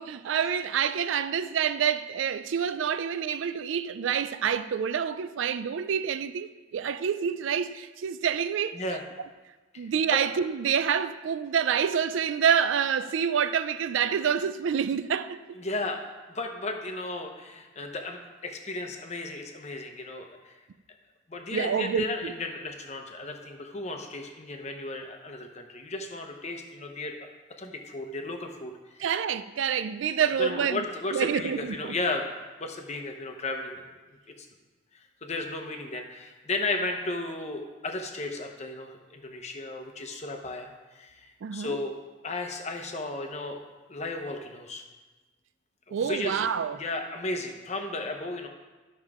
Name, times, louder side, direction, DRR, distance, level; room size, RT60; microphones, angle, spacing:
voice 1, 0.0-8.8 9.8-15.6 21.5-22.3 29.0-30.8 31.1-31.9 41.4-41.8 45.9-46.8, right 7 dB, 70° right, 0.4 m, -27 dB
voice 2, 9.7-10.2 15.5-16.0 16.3-20.5 21.3-27.2 27.6-29.0 30.4-32.3 32.6-33.9 34.4-34.5 34.9-41.9 42.2-43.6 43.9-44.8 45.9-46.4 46.7-48.5, left 2 dB, 35° left, 0.9 m, -34 dB
12.0 x 6.4 x 3.6 m
head